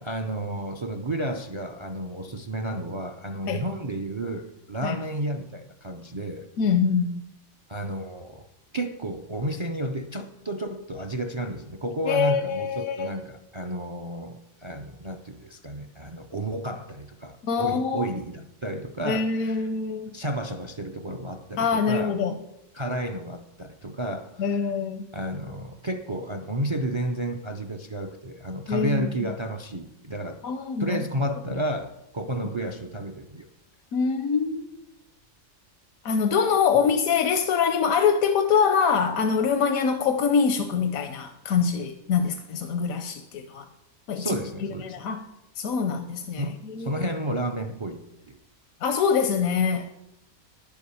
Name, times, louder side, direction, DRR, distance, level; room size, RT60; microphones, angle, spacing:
voice 1, 0.0-6.5 7.7-8.5 8.7-19.6 20.1-22.2 22.7-24.7 25.1-30.4 30.8-33.5 36.7-36.8 44.1-45.0 46.4-48.4, right 1 dB, 50° right, 0.3 m, -32 dB
voice 2, 6.6-7.2 12.1-13.2 17.4-18.1 19.0-20.1 21.6-22.3 24.4-25.0 28.7-29.1 30.4-31.1 33.9-34.7 36.0-43.7 44.1-44.4 44.8-45.2 45.6-46.9 48.8-49.9, left 6 dB, 85° left, 1.1 m, -24 dB
10.5 x 6.9 x 6.9 m
omnidirectional pair, 1.4 m